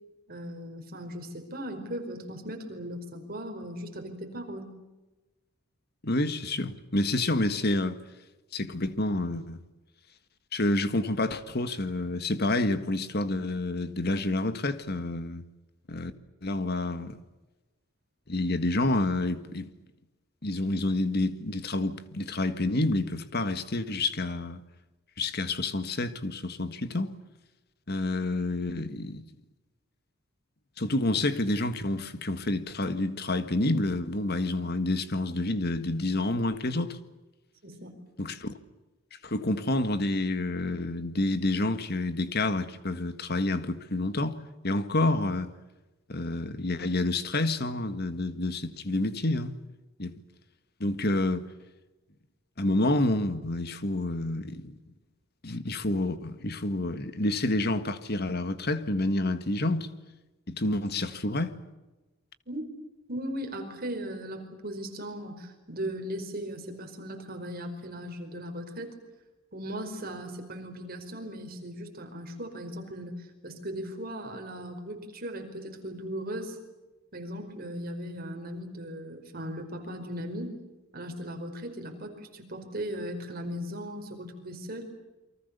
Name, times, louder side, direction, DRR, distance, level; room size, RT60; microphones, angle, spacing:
voice 1, 0.3-4.7 37.6-38.0 62.5-62.7 63.1-68.9 69.5-76.6 77.1-80.5 80.9-84.9, equal, 45° right, 4.9 m, -38 dB
voice 2, 6.0-8.0 8.5-9.6 10.5-15.4 15.9-16.1 16.4-17.2 18.3-19.7 20.4-24.6 25.2-27.1 27.9-29.2 30.8-37.0 38.2-38.5 39.2-44.4 44.6-45.5 46.1-49.6 50.0-50.2 50.8-51.4 52.6-54.8 55.4-59.9 60.5-61.6, left 2 dB, 50° left, 1.7 m, -28 dB
29.0 x 24.0 x 6.9 m
head